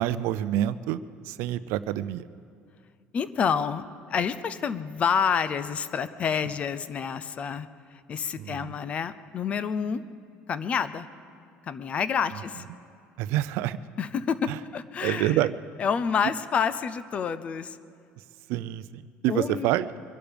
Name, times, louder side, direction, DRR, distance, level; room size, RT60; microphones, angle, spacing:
voice 1, 0.0-2.2 8.4-8.8 12.3-12.4 13.2-13.8 14.5-14.6 15.0-15.5 18.5-19.9, right 13 dB, 70° right, 15 dB, 0.5 m, -27 dB
voice 2, 3.1-10.0 10.5-11.1 11.6-12.6 14.0-15.4 15.8-17.8 19.3-19.7, left 6 dB, 30° left, 14 dB, 0.5 m, -28 dB
23.5 x 12.0 x 5.2 m, 2.4 s
cardioid pair, 160°, 4 cm